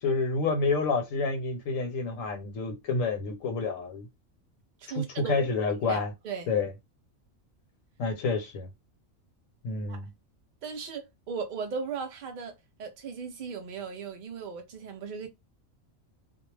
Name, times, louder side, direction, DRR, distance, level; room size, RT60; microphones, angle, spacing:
voice 1, 0.0-4.1 5.0-5.1 5.3-6.1 6.5-6.7 8.0-8.7 9.6-10.1, left 4 dB, 80° left, 1.1 m, -28 dB
voice 2, 4.8-5.4 5.7-6.5 9.9-10.0 10.6-12.5 12.8-15.3, right 5 dB, 75° right, 0.4 m, -37 dB
2.4 x 2.0 x 3.1 m
omnidirectional pair, 1.4 m